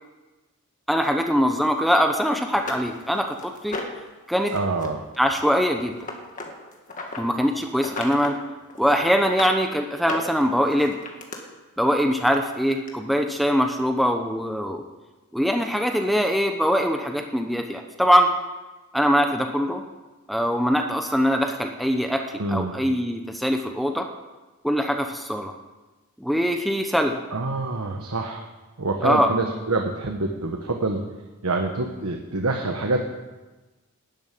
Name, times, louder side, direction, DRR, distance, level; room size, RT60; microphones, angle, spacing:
voice 1, 0.9-3.8 4.3-4.5 5.2-6.0 7.2-8.4 8.8-11.0 11.8-14.8 15.3-18.3 18.9-19.8 20.3-22.2 22.5-24.1 24.6-25.5 26.2-27.2 29.0-29.3, equal, ahead, 4 dB, 0.8 m, -22 dB
sound 1, 2.0-2.1 2.5-4.1 4.5-4.9 5.1-7.2 7.7-8.4 8.7-9.5 9.9-11.4 12.3-12.4 12.9-13.0, left 2 dB, 35° left, 2.0 m, -35 dB
voice 2, 4.5-5.0 22.4-22.8 27.3-28.5 28.8-31.1 31.4-33.0, right 2 dB, 85° right, 3 dB, 1.3 m, -26 dB
13.0 x 9.2 x 9.3 m, 1.2 s
head